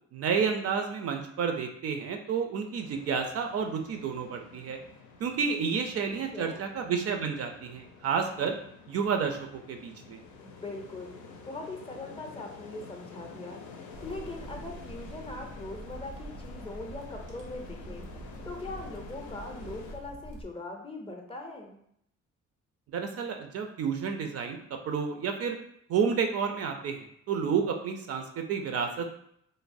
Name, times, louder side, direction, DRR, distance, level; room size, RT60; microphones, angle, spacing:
voice 1, 0.1-4.8 5.2-8.6 8.9-10.2 22.9-24.6 24.9-25.6 25.9-29.1, right 6 dB, 55° right, 5 dB, 0.4 m, -30 dB
sound 1, 2.8-20.0, left 4 dB, 85° left, 0.5 m, -49 dB
voice 2, 6.1-6.6 10.4-13.6 14.0-18.1 18.4-21.8, left 2 dB, 20° left, 1 dB, 0.5 m, -41 dB
sound 2, 13.9-20.5, right 2 dB, 85° right, 0.8 m, -45 dB
3.0 x 2.0 x 2.5 m, 0.72 s
cardioid pair, 90°, 30 cm